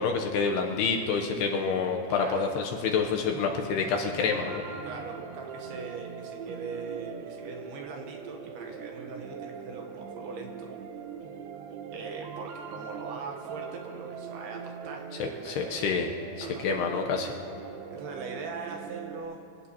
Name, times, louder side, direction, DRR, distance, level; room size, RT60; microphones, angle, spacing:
voice 1, 0.0-4.6 15.2-16.1 16.4-17.4, left 5 dB, 80° left, 2 dB, 2.6 m, -28 dB
voice 2, 2.1-2.5 4.8-10.7 11.9-16.0 16.4-16.8 17.9-19.4, right 4 dB, 75° right, 2 dB, 2.7 m, -41 dB
sound 1, 3.2-19.2, right 7 dB, 90° right, 2.0 m, -41 dB
25.0 x 17.5 x 2.9 m, 2.7 s
omnidirectional pair, 5.3 m